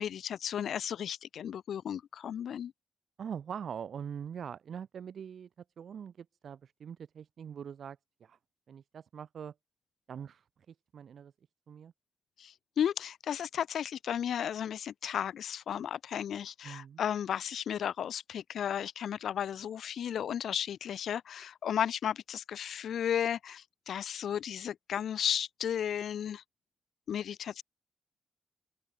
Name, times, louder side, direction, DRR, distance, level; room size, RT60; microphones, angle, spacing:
voice 1, 0.0-2.7 12.4-26.4 27.1-27.6, left 9 dB, 85° left, 0.3 m, -34 dB
voice 2, 3.2-5.5 5.8-8.4 8.7-9.5 10.1-11.3 11.7-11.9 16.6-17.0, right 8 dB, 65° right, 0.6 m, -43 dB
open air
wide cardioid pair, 135°, 0 cm